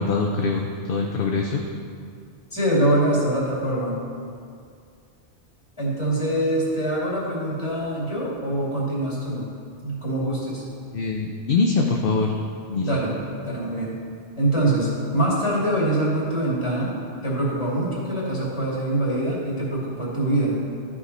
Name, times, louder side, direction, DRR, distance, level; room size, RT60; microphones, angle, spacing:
voice 1, 0.0-1.6 10.9-12.3 12.7-12.9, left 4 dB, 60° left, 1 dB, 0.8 m, -23 dB
voice 2, 2.5-3.9 5.8-9.4 9.8-10.6 12.8-13.2 13.4-14.0 14.4-16.9 17.2-20.6, right 1 dB, 25° left, -7 dB, 2.6 m, -24 dB
14.0 x 4.8 x 4.2 m, 2.3 s
omnidirectional pair, 1.1 m